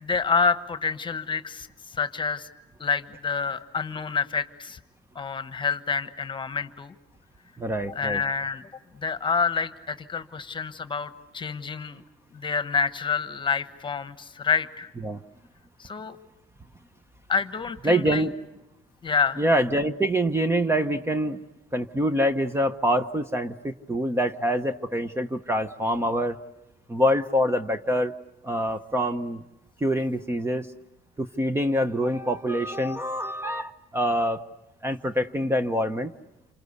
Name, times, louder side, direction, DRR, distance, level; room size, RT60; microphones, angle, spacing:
voice 1, 0.0-2.5 2.8-4.8 5.1-6.9 7.9-8.6 9.0-12.0 12.3-14.9 15.8-16.2 17.3-18.2 19.0-19.4, left 5 dB, 30° left, 12 dB, 1.2 m, -28 dB
voice 2, 7.6-8.2 15.0-15.2 17.8-18.3 19.4-21.4 21.7-26.4 26.9-28.1 28.4-29.4 29.8-30.7 31.2-34.4 34.8-36.1, equal, 15° right, 10 dB, 0.9 m, -25 dB
28.0 x 25.5 x 8.2 m, 0.96 s
cardioid pair, 110°, 17 cm